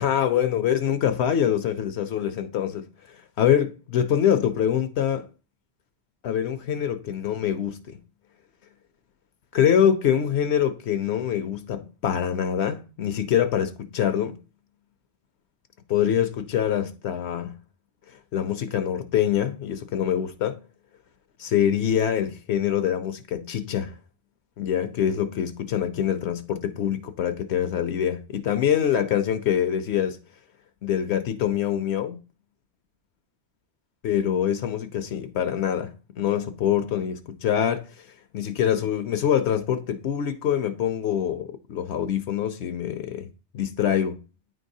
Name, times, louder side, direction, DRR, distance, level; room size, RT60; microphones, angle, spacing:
voice 1, 0.0-5.3 6.2-8.0 9.5-14.4 15.9-17.6 18.3-20.6 21.4-23.9 24.6-30.2 30.8-32.2 34.0-37.9 38.3-43.3 43.5-44.2, left 9 dB, 70° left, 0.8 m, -25 dB
9.4 x 3.9 x 2.7 m
omnidirectional pair, 1.2 m